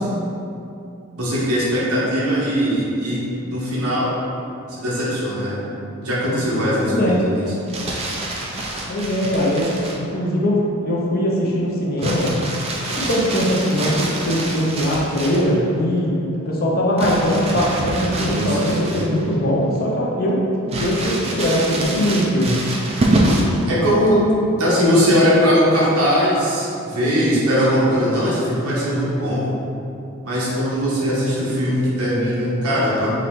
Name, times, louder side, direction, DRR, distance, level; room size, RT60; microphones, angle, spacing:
voice 1, 1.2-4.1 4.7-5.6 6.0-7.7 18.3-19.0 23.7-24.2 24.6-29.4 30.2-33.1, equal, 80° right, -7 dB, 1.1 m, -20 dB
voice 2, 6.8-7.2 8.9-9.7 10.0-12.3 12.9-16.1 16.5-20.4 20.8-22.5, equal, 45° left, -3 dB, 0.6 m, -21 dB
Crumpling crinkling, 7.5-10.1 12.0-15.5 17.0-19.3 19.8-19.9 20.7-23.6 25.1-25.5, right 1 dB, 30° right, 0.4 m, -25 dB
3.9 x 3.1 x 3.0 m, 2.7 s
head